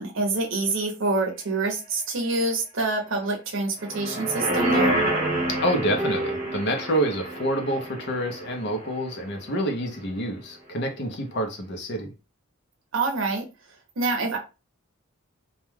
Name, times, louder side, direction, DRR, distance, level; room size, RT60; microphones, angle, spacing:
voice 1, 0.0-4.9 12.9-13.4 14.0-14.4, right 3 dB, 65° right, 0.7 m, -26 dB
sound 1, 3.8-9.1 9.5-9.6, right 1 dB, 35° right, 1.0 m, -28 dB
voice 2, 5.6-12.1, right 1 dB, 55° left, 0.6 m, -27 dB
sound 2, 6.0-8.5 9.5-9.6, right 1 dB, 5° right, 0.3 m, -35 dB
2.3 x 2.2 x 3.1 m
head